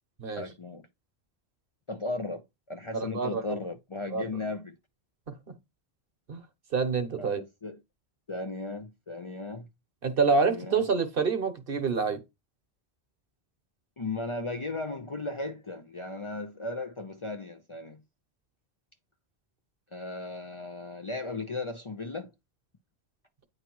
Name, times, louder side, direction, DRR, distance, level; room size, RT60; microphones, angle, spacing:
voice 1, 0.3-0.9 1.9-4.7 7.2-7.8 8.3-9.7 10.3-10.9 14.0-18.0 19.9-22.3, left 2 dB, 35° left, 0.6 m, -36 dB
voice 2, 2.9-3.6 4.1-4.2 5.3-5.4 6.3-6.4 6.7-7.4 10.0-12.2, right 5 dB, 60° right, 1.3 m, -27 dB
9.2 x 3.3 x 4.5 m
omnidirectional pair, 1.1 m